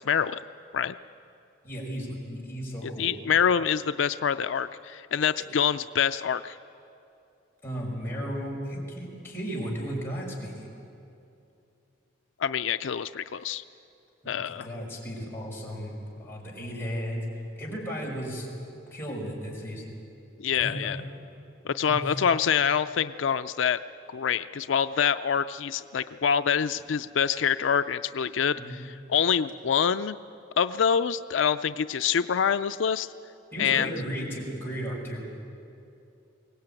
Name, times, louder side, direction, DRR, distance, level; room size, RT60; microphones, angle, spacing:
voice 1, 0.1-0.4 0.7-0.9 2.8-6.6 12.4-13.6 14.3-14.7 20.4-21.0 21.6-23.8 24.1-28.8 29.1-30.2 30.6-33.1 33.6-33.9, left 7 dB, 85° left, 11 dB, 0.4 m, -26 dB
voice 2, 1.6-3.1 7.6-10.7 14.2-18.5 18.9-19.9 20.5-21.0 21.9-22.2 28.5-28.8 33.5-35.2, equal, 15° left, -4 dB, 5.6 m, -35 dB
23.0 x 18.0 x 9.0 m, 2.7 s
head